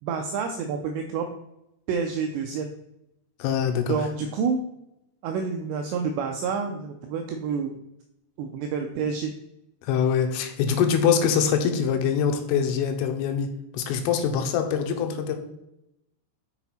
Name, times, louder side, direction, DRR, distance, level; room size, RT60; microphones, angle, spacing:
voice 1, 0.0-1.3 1.9-2.7 3.9-4.6 5.2-7.8 8.4-9.3, right 5 dB, 85° right, 4 dB, 2.5 m, -28 dB
voice 2, 3.4-3.9 9.8-13.5 13.7-15.4, left 7 dB, 85° left, 5 dB, 3.5 m, -24 dB
6.8 x 6.0 x 4.2 m, 0.85 s
omnidirectional pair, 5.7 m